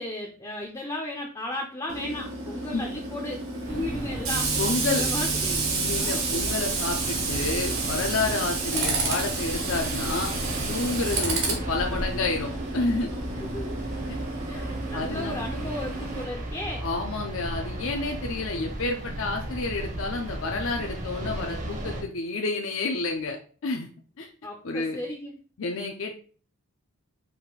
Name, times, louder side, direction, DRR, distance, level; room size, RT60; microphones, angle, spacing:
voice 1, 0.0-3.4 3.7-5.7 13.4-13.8 14.5-16.9 24.4-25.4, left 1 dB, 15° left, 1 dB, 0.5 m, -35 dB
Tools, 1.9-16.2, right 3 dB, 65° right, 1.3 m, -30 dB
sound 1, 3.6-22.0, right 1 dB, 35° right, 0.8 m, -35 dB
voice 2, 4.6-5.0 5.7-10.3 10.7-13.1 14.1-14.2 14.9-15.4 16.8-23.4 23.6-23.9 24.2-24.3 24.6-25.0 25.6-26.2, left 3 dB, 65° left, 2 dB, 0.6 m, -29 dB
4.8 x 2.6 x 3.8 m, 0.41 s
head